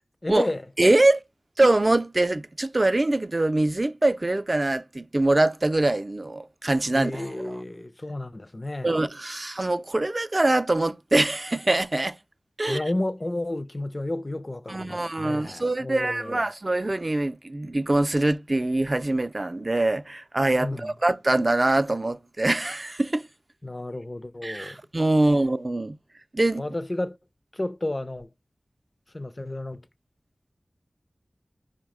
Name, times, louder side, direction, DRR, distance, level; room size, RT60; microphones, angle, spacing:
voice 1, 0.2-0.7 6.9-9.0 12.6-16.4 20.6-20.9 23.6-24.8 26.6-27.2 27.5-28.3 29.1-29.8, left 1 dB, 35° left, 0.4 m, -31 dB
voice 2, 0.8-1.2 1.6-7.3 8.8-12.2 12.6-12.8 14.7-23.3 24.4-26.0 26.3-26.6, right 2 dB, 40° right, 0.4 m, -23 dB
5.3 x 2.1 x 4.7 m
wide cardioid pair, 45°, 0 cm